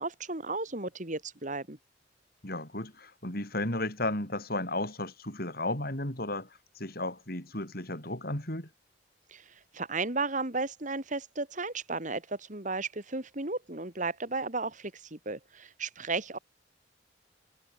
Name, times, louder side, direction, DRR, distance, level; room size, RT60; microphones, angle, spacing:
voice 1, 0.0-1.8 9.3-9.4 9.7-16.4, right 3 dB, 40° right, 2.8 m, -34 dB
voice 2, 2.4-6.5 6.8-8.7, left 2 dB, 55° left, 7.3 m, -34 dB
head